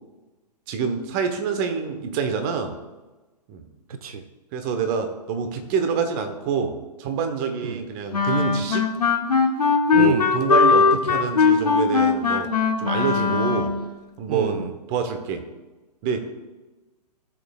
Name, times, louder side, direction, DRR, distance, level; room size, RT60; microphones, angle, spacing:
voice 1, 0.7-2.8 3.5-3.6 4.5-8.9 9.9-13.8 14.2-15.4 16.0-16.2, right 6 dB, 30° right, 6 dB, 1.1 m, -26 dB
voice 2, 3.9-4.2 7.6-7.8 9.9-10.3 14.3-14.7, right 6 dB, 60° right, 9 dB, 0.7 m, -28 dB
Wind instrument woodwind instrument, 8.1-13.9, left 5 dB, 70° left, 1.0 m, -20 dB
16.5 x 7.1 x 2.4 m, 1.2 s
figure-of-eight pair, 120°, 21 cm